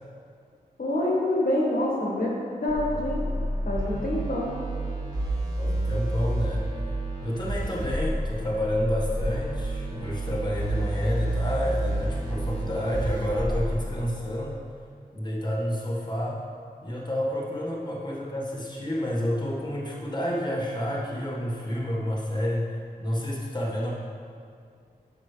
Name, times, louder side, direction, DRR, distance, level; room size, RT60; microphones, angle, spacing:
voice 1, 0.8-3.3 3.6-4.6, left 1 dB, 65° left, -4 dB, 1.5 m, -26 dB
sound 1, 2.7-14.0, right 1 dB, 25° right, 1.9 m, -30 dB
voice 2, 5.6-6.7 7.2-14.6 15.1-16.4 16.8-23.9, equal, 25° left, -5 dB, 1.6 m, -29 dB
13.0 x 6.2 x 3.3 m, 2.3 s
wide cardioid pair, 70°, 16 cm